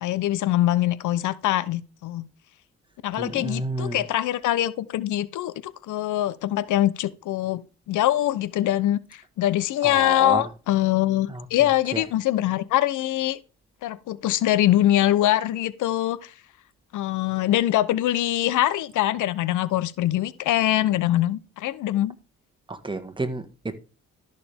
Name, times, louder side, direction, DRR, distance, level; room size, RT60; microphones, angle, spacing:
voice 1, 0.0-2.3 3.0-13.4 13.8-16.3 16.9-22.2, left 13 dB, 80° left, 0.9 m, -23 dB
voice 2, 3.2-4.1 9.8-10.5 11.3-12.1 22.7-23.8, right 2 dB, 15° right, 1.8 m, -31 dB
13.5 x 6.6 x 3.6 m
cardioid pair, 90°, 30 cm